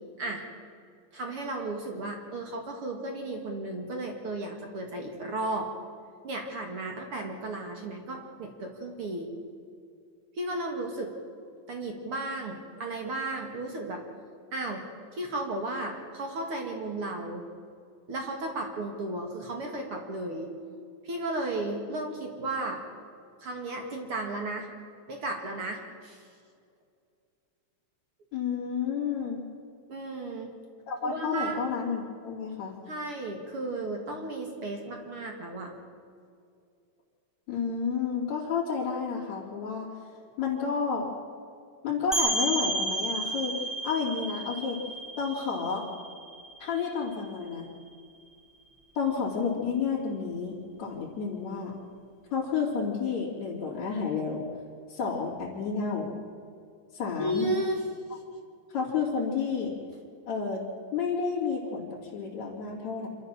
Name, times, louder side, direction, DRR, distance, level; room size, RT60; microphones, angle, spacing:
voice 1, 1.1-5.7 6.2-9.3 10.4-11.1 11.7-14.0 14.5-14.8 15.1-17.4 18.1-20.5 21.0-22.8 23.4-24.7 25.1-26.2 29.9-30.5 31.0-31.6 32.9-35.7 57.2-57.8, right 2 dB, 50° right, 3 dB, 1.6 m, -34 dB
voice 2, 28.3-29.4 30.9-32.7 37.5-39.9 40.4-41.1 41.8-44.8 45.2-45.8 46.6-47.7 49.0-50.5 50.8-51.8 52.3-54.4 54.9-56.1 56.9-57.5 58.7-59.7 60.3-60.6 60.9-63.1, left 5 dB, 40° left, -8 dB, 3.8 m, -30 dB
sound 1, 42.1-47.6, right 2 dB, ahead, 0.7 m, -32 dB
27.0 x 13.5 x 7.5 m, 2.4 s
omnidirectional pair, 5.4 m